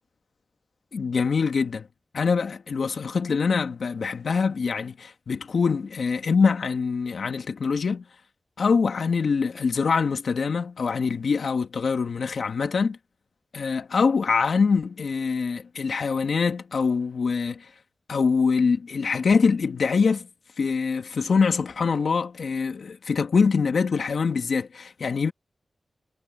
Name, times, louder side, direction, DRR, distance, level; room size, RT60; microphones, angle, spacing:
voice 1, 0.9-1.9 2.1-8.0 8.6-13.0 13.5-17.7 18.1-20.3 20.6-25.3, left 5 dB, 70° left, 2.4 m, -24 dB
wide cardioid pair, 125°, 0 cm